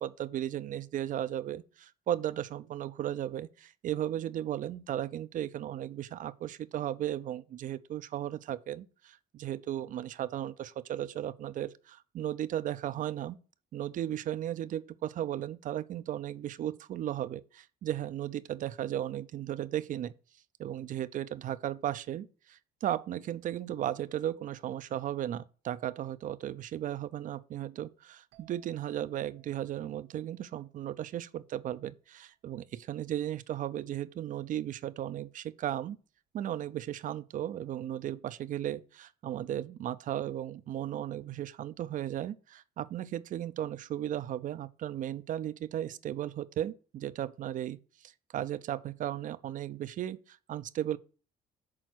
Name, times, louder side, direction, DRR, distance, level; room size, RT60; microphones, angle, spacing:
voice 1, 0.0-13.4 13.7-20.1 20.6-36.0 36.3-51.0, right 11 dB, 50° right, 0.5 m, -35 dB
sound 1, 28.3-31.9, right 17 dB, 80° right, 1.3 m, -66 dB
6.2 x 4.1 x 6.3 m
cardioid pair, 110°, 17 cm